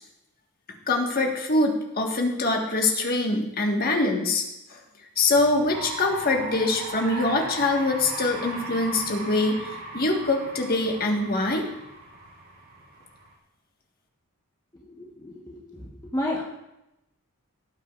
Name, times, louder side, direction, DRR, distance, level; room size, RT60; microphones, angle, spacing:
voice 1, 0.9-4.4 4.7-4.8 5.2-9.6 9.9-11.7, left 2 dB, 45° left, 1 dB, 1.6 m, -24 dB
sound 1, 5.3-13.3, right 3 dB, 90° right, 2.6 m, -38 dB
voice 2, 14.7-16.4, left 1 dB, 15° left, -4 dB, 1.2 m, -32 dB
18.0 x 8.3 x 2.5 m, 0.89 s
head